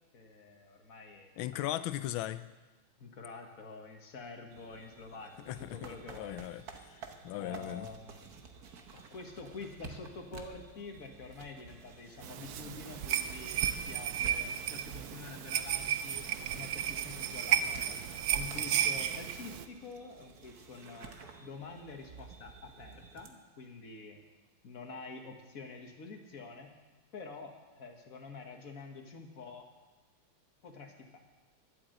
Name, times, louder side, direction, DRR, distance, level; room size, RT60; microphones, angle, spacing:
voice 1, 0.1-1.7 3.0-5.3 5.6-6.4 7.4-8.4 8.9-18.0 18.3-21.1 21.4-24.2 24.6-26.7 27.1-29.7 30.6-31.2, left 4 dB, 45° left, 4 dB, 1.7 m, -47 dB
voice 2, 1.4-2.4 5.5-6.6 6.9-7.9, left 13 dB, 85° left, 13 dB, 1.4 m, -38 dB
sound 1, 4.5-23.3, right 5 dB, 55° right, 1.4 m, -51 dB
sound 2, 12.2-19.7, right 9 dB, 70° right, 0.9 m, -33 dB
12.0 x 8.7 x 7.8 m, 1.2 s
omnidirectional pair, 2.2 m